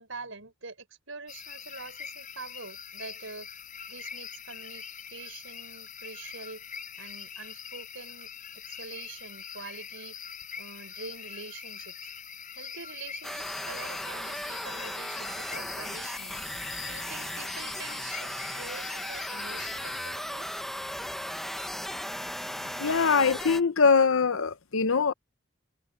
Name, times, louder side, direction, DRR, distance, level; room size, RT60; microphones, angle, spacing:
voice 1, 0.0-3.5 3.9-6.6 7.0-8.3 8.7-10.1 10.6-12.1 12.5-16.4 16.9-20.5, right 4 dB, 70° right, 5.9 m, -45 dB
sound 1, 1.3-20.1, left 8 dB, 40° left, 7.8 m, -43 dB
sound 2, 13.2-23.6, equal, ahead, 0.8 m, -36 dB
voice 2, 22.8-25.1, left 5 dB, 80° left, 0.8 m, -23 dB
head